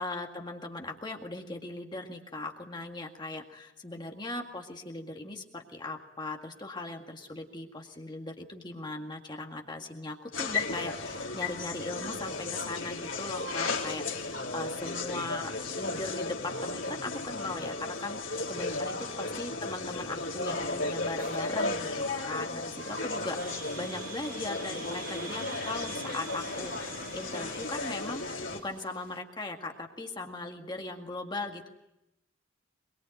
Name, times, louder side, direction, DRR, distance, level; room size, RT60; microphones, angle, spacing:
voice 1, 0.0-26.7 27.1-31.7, left 2 dB, 20° left, 2 dB, 1.9 m, -39 dB
sound 1, 10.3-28.6, left 3 dB, 70° left, 3.5 m, -35 dB
sound 2, 19.7-29.2, right 5 dB, 45° right, 2.1 m, -47 dB
24.0 x 23.0 x 9.1 m, 0.88 s
head